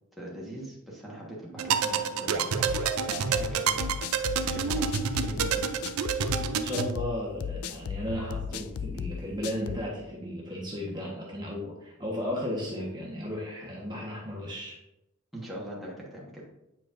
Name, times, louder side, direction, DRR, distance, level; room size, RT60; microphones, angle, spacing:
voice 1, 0.1-4.0 4.5-5.7 15.3-16.5, right 1 dB, ahead, -5 dB, 1.3 m, -42 dB
sound 1, 1.6-6.9, right 6 dB, 80° right, 0.5 m, -28 dB
sound 2, 2.7-9.9, left 7 dB, 80° left, 0.4 m, -36 dB
voice 2, 6.5-14.8, left 1 dB, 20° right, -4 dB, 1.2 m, -35 dB
8.3 x 4.9 x 2.5 m, 0.90 s
head